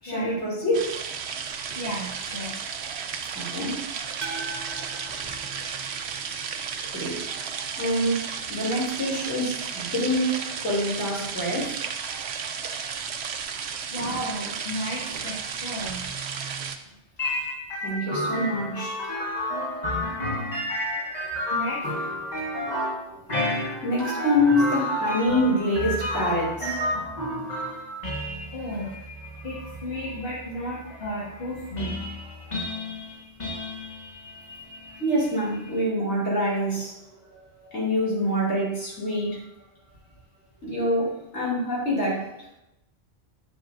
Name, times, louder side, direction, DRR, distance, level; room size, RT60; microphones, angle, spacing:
voice 1, 0.0-0.9 3.3-3.8 6.9-7.2 7.8-8.2 8.5-11.8 17.8-19.0 20.9-21.5 22.2-23.5 23.8-26.8 32.0-32.6 35.0-37.0 37.3-39.4 40.6-42.3, left 1 dB, 85° left, -4 dB, 3.0 m, -26 dB
sound 1, 0.7-16.8, right 6 dB, 75° right, 0.9 m, -33 dB
voice 2, 1.7-2.6 5.2-5.5 13.9-16.1 21.5-22.1 28.5-28.9 29.4-32.1, equal, 55° left, -8 dB, 2.2 m, -34 dB
sound 2, 4.2-6.5, right 3 dB, 40° right, 0.9 m, -39 dB
sound 3, 17.2-35.9, left 1 dB, 40° left, 1.5 m, -31 dB
8.9 x 7.4 x 2.6 m, 0.86 s
omnidirectional pair, 1.1 m